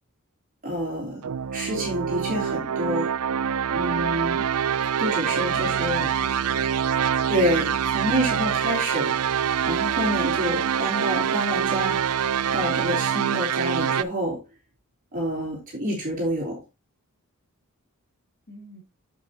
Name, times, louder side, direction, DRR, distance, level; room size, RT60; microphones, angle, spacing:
voice 1, 0.6-1.2 1.5-3.1 3.7-4.5 5.0-6.1 7.3-12.0 12.5-14.4 15.1-16.6, equal, 40° right, 3.5 m, -28 dB
sound 1, 1.2-14.0, right 8 dB, 70° right, 0.4 m, -25 dB
voice 2, 5.1-6.7 18.5-18.8, left 1 dB, 45° left, 2.9 m, -44 dB
8.2 x 7.7 x 2.9 m
head